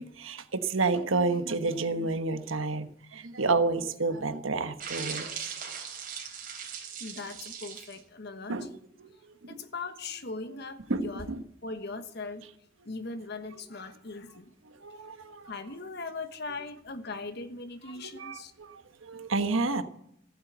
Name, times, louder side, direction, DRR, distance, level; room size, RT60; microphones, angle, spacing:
voice 1, 0.0-5.5 8.5-8.7 9.4-9.6 10.9-11.4 14.8-15.5 18.0-19.8, right 3 dB, 90° right, 9 dB, 1.2 m, -30 dB
sound 1, 4.8-8.0, right 7 dB, 45° right, 3.8 m, -39 dB
voice 2, 7.0-8.7 9.5-11.3 11.6-12.5 12.8-14.5 15.4-18.5, left 3 dB, 55° left, 9 dB, 1.2 m, -39 dB
15.0 x 8.4 x 8.0 m, 0.73 s
head